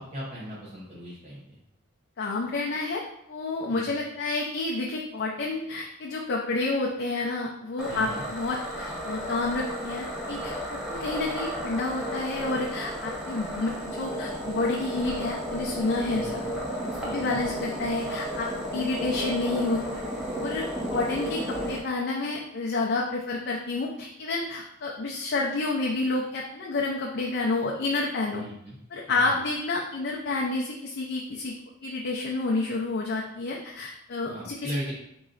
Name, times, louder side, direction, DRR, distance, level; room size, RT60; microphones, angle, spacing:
voice 1, 0.0-1.6 3.7-3.9 7.9-8.2 16.1-16.4 17.0-17.4 28.3-28.8 29.1-29.2 34.2-34.9, equal, 35° right, -8 dB, 1.0 m, -37 dB
voice 2, 2.2-3.0 3.3-16.4 17.0-20.0 20.4-28.4 28.9-31.5 31.8-34.7, left 3 dB, 55° left, -1 dB, 0.5 m, -29 dB
sound 1, 7.8-21.8, equal, 5° right, 0.9 m, -33 dB
3.8 x 3.1 x 3.8 m, 0.77 s
head